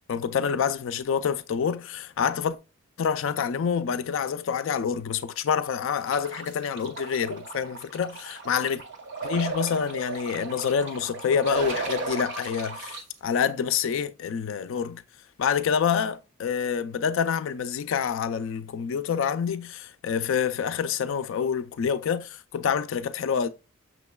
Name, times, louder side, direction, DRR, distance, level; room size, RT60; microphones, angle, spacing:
voice 1, 0.1-2.6 3.0-8.8 9.2-15.0 15.4-23.5, left 7 dB, 65° left, 0.3 m, -27 dB
sound 1, 6.1-13.0, right 3 dB, 55° right, 0.7 m, -35 dB
6.2 x 3.0 x 2.2 m
head